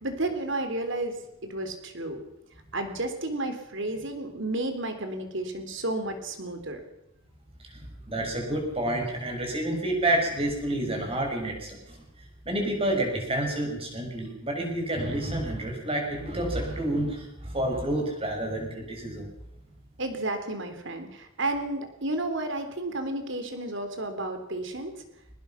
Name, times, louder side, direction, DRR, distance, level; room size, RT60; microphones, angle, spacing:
voice 1, 0.0-1.2 1.4-2.2 2.7-6.8 20.0-25.0, right 2 dB, 60° right, 7 dB, 3.5 m, -32 dB
voice 2, 8.1-12.0 12.4-19.3, right 1 dB, 25° right, 1 dB, 6.4 m, -29 dB
23.0 x 20.0 x 5.9 m, 0.84 s
head